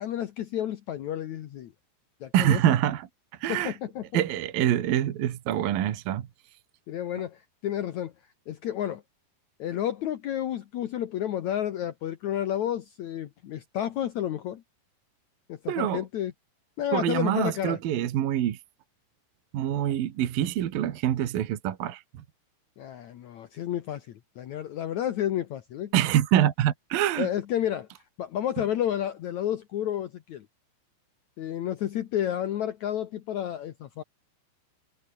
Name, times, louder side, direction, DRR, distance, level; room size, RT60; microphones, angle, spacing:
voice 1, 0.0-1.7 2.2-2.6 3.5-4.0 6.9-8.1 8.5-9.0 9.6-14.6 15.5-16.3 16.8-17.8 22.8-25.9 27.2-27.9 28.2-30.5 31.4-34.0, left 11 dB, 85° left, 1.6 m, -31 dB
voice 2, 2.3-3.1 3.4-3.8 4.1-6.3 15.7-16.0 16.9-18.6 19.5-22.0 25.9-27.3, right 11 dB, 60° right, 3.1 m, -25 dB
omnidirectional pair, 5.2 m